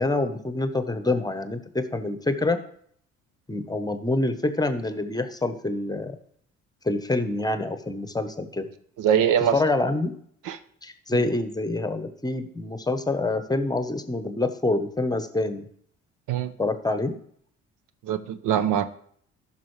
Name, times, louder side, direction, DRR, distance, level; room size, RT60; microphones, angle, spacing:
voice 1, 0.0-2.6 3.5-6.2 6.8-8.7 9.5-10.2 10.8-15.7 16.6-17.1, left 2 dB, 10° left, 9 dB, 1.0 m, -26 dB
voice 2, 9.0-9.5 10.5-10.6 11.1-11.2 16.3-16.5 18.0-18.9, right 9 dB, 75° right, 12 dB, 0.7 m, -22 dB
13.5 x 5.7 x 3.2 m, 0.62 s
supercardioid pair, 70°, 31 cm